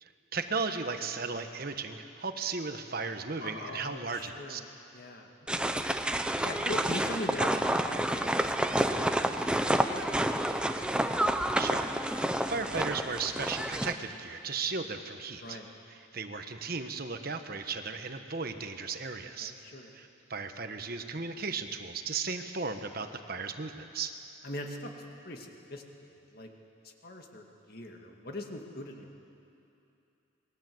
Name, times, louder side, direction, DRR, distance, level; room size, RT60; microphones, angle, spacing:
voice 1, 0.0-4.6 11.6-15.6 15.9-19.5 19.9-24.1, right 4 dB, 45° right, 7 dB, 1.2 m, -36 dB
voice 2, 3.4-4.6 4.9-5.3 5.6-5.7 6.4-10.9 15.4-15.7 19.4-19.9 24.4-24.9 25.2-26.5 26.8-29.1, left 1 dB, 50° left, 2 dB, 2.2 m, -42 dB
sound 1, 5.5-13.9, right 1 dB, 5° right, 0.7 m, -29 dB
28.0 x 21.0 x 7.9 m, 2.7 s
head